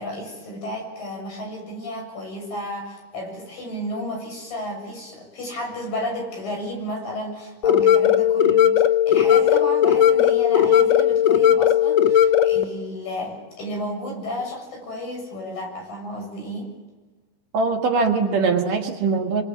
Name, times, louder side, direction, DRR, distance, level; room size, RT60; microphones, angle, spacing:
voice 1, 0.0-8.8 9.1-16.7, left 1 dB, 60° left, 1 dB, 9.0 m, -32 dB
sound 1, 7.6-12.6, left 9 dB, 85° left, 1.5 m, -17 dB
voice 2, 17.5-19.4, right 4 dB, 60° right, 2 dB, 3.3 m, -21 dB
26.0 x 25.5 x 7.5 m, 1.2 s
omnidirectional pair, 4.5 m